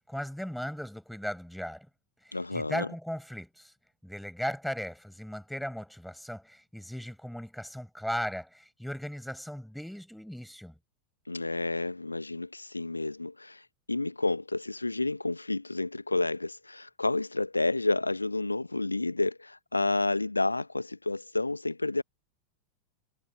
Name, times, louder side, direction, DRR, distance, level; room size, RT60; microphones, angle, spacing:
voice 1, 0.0-1.9 2.2-3.7 4.0-10.8, equal, ahead, 6.5 m, -37 dB
voice 2, 2.3-2.9 11.3-22.0, left 2 dB, 80° left, 0.8 m, -30 dB
figure-of-eight pair, 90°, 0 cm